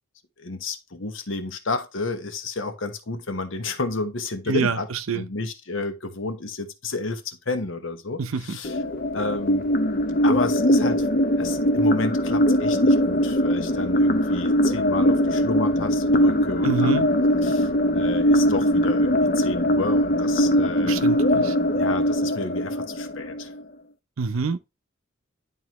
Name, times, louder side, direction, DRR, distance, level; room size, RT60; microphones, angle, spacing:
voice 1, 0.4-4.9 5.1-8.7 9.1-9.7 10.2-11.1 11.4-17.1 17.4-21.0 21.7-23.5, left 3 dB, 65° left, 1.1 m, -31 dB
voice 2, 4.5-5.3 8.2-8.6 16.6-17.1 20.8-21.6 24.2-24.6, right 5 dB, 80° right, 0.6 m, -26 dB
sound 1, 8.6-23.6, equal, 45° left, 0.7 m, -21 dB
11.0 x 3.8 x 3.0 m
head